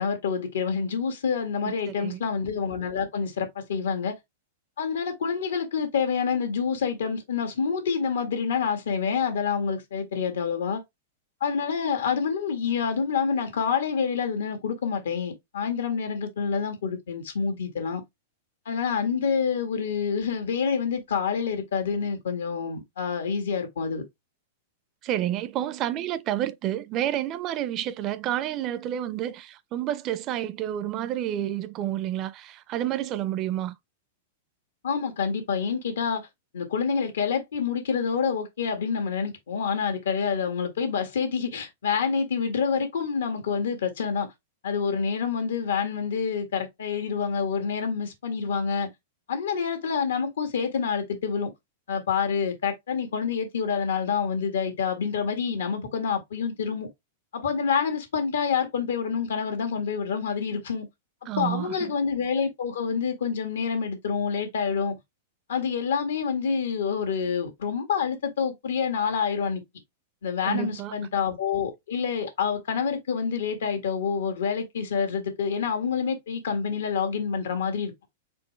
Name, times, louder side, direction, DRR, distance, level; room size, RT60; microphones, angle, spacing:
voice 1, 0.0-4.1 4.8-10.8 11.4-18.0 18.6-24.0 34.8-36.3 36.5-44.3 44.6-48.9 49.3-51.5 51.9-56.9 57.3-60.9 61.4-64.9 65.5-69.6 70.2-77.9, left 6 dB, 90° left, 1.7 m, -27 dB
voice 2, 1.6-2.2 25.0-33.7 61.3-61.8 70.4-71.1, right 12 dB, 35° right, 0.4 m, -30 dB
4.4 x 3.7 x 3.1 m
supercardioid pair, 145°, 0 cm